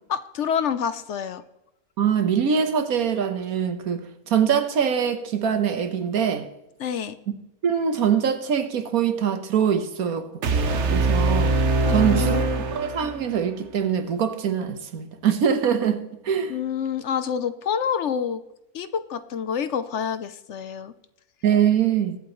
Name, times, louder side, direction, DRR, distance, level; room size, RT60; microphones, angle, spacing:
voice 1, 0.1-1.4 6.8-7.2 11.9-12.4 16.5-18.4 18.7-20.9, left 7 dB, 60° left, 0.9 m, -27 dB
voice 2, 2.0-6.5 7.6-11.6 11.9-12.4 12.7-16.5 21.4-22.2, right 8 dB, 85° right, 1.5 m, -23 dB
sound 1, 10.4-13.5, right 3 dB, 55° right, 1.1 m, -23 dB
21.5 x 8.3 x 3.1 m
omnidirectional pair, 1.5 m